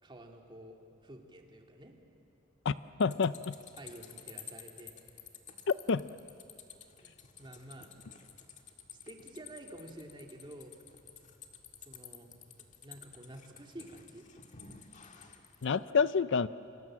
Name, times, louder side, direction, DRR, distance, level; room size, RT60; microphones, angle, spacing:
voice 1, 0.0-0.8 1.0-1.9 3.8-4.9 7.4-7.9 9.0-10.7 11.9-12.3 12.8-14.2, right 1 dB, 25° right, 2 dB, 2.5 m, -49 dB
voice 2, 3.0-3.5 5.7-6.1 15.6-16.5, left 5 dB, 65° left, 15 dB, 0.5 m, -28 dB
sound 1, 3.0-15.7, left 7 dB, 40° left, 1.7 m, -52 dB
28.5 x 24.5 x 7.6 m, 2.8 s
head